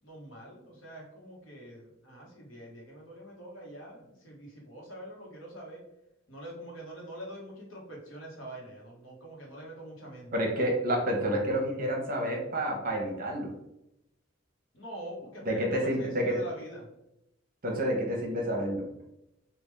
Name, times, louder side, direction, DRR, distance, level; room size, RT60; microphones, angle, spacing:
voice 1, 0.0-5.8 6.3-10.3 14.7-16.9, right 1 dB, 75° left, -2 dB, 1.2 m, -45 dB
voice 2, 10.3-13.5 15.4-16.4 17.6-18.9, equal, 50° right, 1 dB, 0.9 m, -29 dB
3.5 x 2.4 x 3.3 m, 0.85 s
head